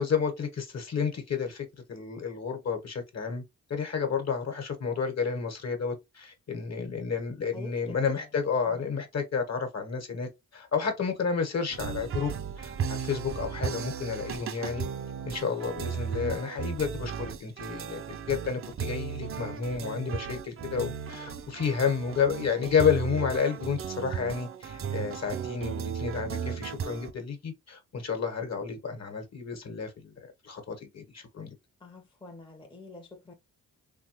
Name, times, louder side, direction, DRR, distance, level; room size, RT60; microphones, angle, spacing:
voice 1, 0.0-3.4 3.7-14.9 15.2-30.1 30.4-31.5, left 6 dB, 50° left, 1.1 m, -31 dB
voice 2, 7.5-8.3 8.7-9.0 31.8-33.3, left 3 dB, 15° left, 0.6 m, -47 dB
sound 1, 11.7-27.1, right 7 dB, 40° right, 0.5 m, -35 dB
3.1 x 2.2 x 2.8 m
cardioid pair, 60°, 35 cm